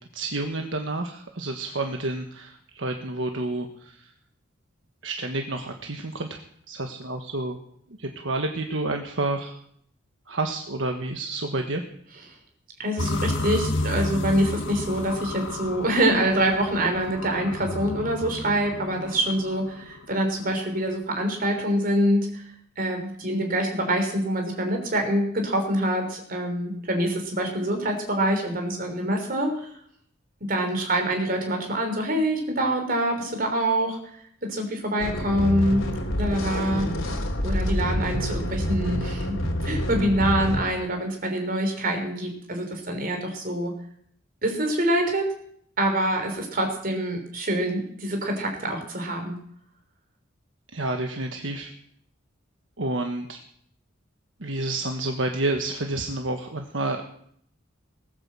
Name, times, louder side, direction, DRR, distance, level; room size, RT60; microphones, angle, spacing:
voice 1, 0.1-4.1 5.0-6.4 6.7-7.6 8.0-9.6 10.3-11.8 50.7-51.7 52.8-53.4 54.4-57.0, right 2 dB, 70° right, 4 dB, 1.4 m, -29 dB
voice 2, 12.8-22.4 22.8-29.7 30.4-35.8 36.2-36.9 37.4-39.4 39.6-43.7 44.4-45.3 45.8-49.4, right 1 dB, 45° right, 4 dB, 3.8 m, -25 dB
sound 1, 13.0-20.1, left 2 dB, 65° left, 1.6 m, -31 dB
sound 2, 35.0-40.6, equal, 90° left, 3.2 m, -27 dB
19.5 x 9.1 x 7.6 m, 0.67 s
head